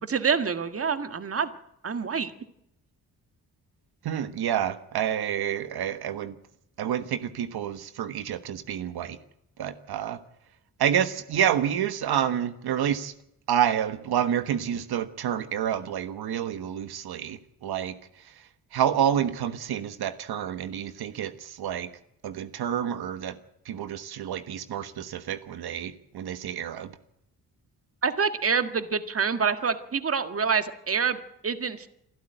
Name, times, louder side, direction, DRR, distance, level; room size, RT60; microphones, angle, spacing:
voice 1, 0.0-1.5 1.8-2.3 28.0-31.9, right 6 dB, 35° right, 9 dB, 1.8 m, -26 dB
voice 2, 4.0-6.3 6.8-9.2 9.6-10.2 10.8-13.1 13.5-17.9 18.7-21.9 22.2-23.4 23.6-26.9, right 9 dB, 75° right, 11 dB, 1.4 m, -28 dB
27.0 x 12.5 x 9.1 m, 0.79 s
cardioid pair, 80°, 38 cm